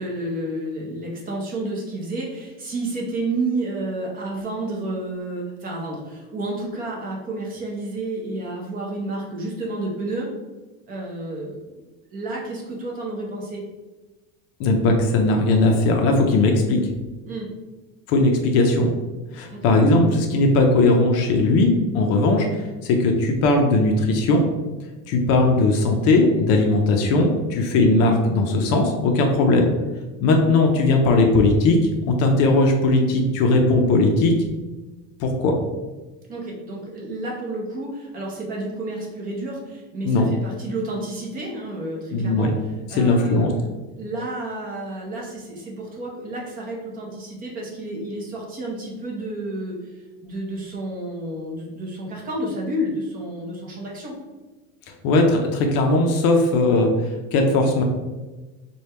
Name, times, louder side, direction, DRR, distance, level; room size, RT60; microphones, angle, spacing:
voice 1, 0.0-10.3 10.9-11.6 12.1-13.6 17.3-17.5 19.5-19.7 36.3-42.5 42.9-43.6 44.0-49.8 50.2-54.2, right 2 dB, 25° right, -2 dB, 0.7 m, -30 dB
voice 2, 14.6-16.8 18.1-18.9 19.3-22.5 22.8-24.4 25.1-29.7 30.2-31.8 32.1-34.3 35.2-35.5 40.0-40.3 42.1-42.5 42.9-43.5 55.0-56.9 57.3-57.8, left 2 dB, 45° left, 3 dB, 0.5 m, -18 dB
3.3 x 2.3 x 4.2 m, 1.2 s
cardioid pair, 160°, 33 cm